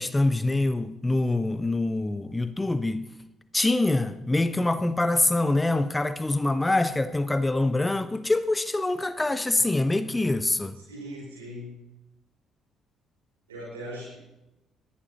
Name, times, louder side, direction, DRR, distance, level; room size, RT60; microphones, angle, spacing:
voice 1, 0.0-3.1 3.5-10.8, left 2 dB, 15° left, 0.8 m, -25 dB
voice 2, 10.7-11.8 13.5-14.2, equal, 80° right, 6.7 m, -39 dB
20.5 x 14.0 x 3.1 m
figure-of-eight pair, 45°, 0 cm